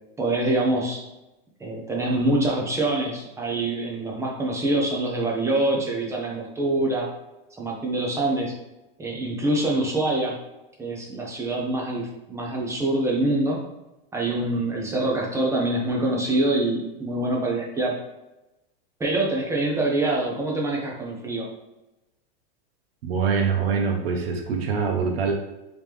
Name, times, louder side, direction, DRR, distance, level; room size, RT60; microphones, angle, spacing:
voice 1, 0.2-1.0 1.6-7.1 7.6-8.5 9.0-10.4 10.8-13.6 14.1-18.0 19.0-21.5, right 2 dB, 10° right, -2 dB, 0.6 m, -25 dB
voice 2, 23.0-25.3, right 5 dB, 80° right, 1 dB, 0.8 m, -24 dB
3.5 x 3.0 x 3.3 m, 0.98 s
supercardioid pair, 140°, 30 cm